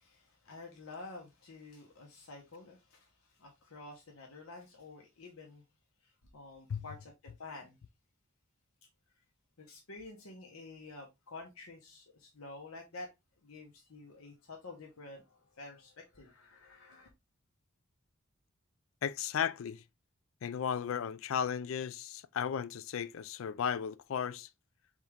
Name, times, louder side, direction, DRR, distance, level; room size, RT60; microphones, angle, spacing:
voice 1, 0.0-5.6 6.0-7.8 9.6-13.1 13.4-17.1, left 3 dB, 90° left, 1.1 m, -50 dB
voice 2, 19.0-19.8 20.4-24.5, left 8 dB, 65° left, 0.4 m, -35 dB
4.2 x 3.6 x 3.4 m
head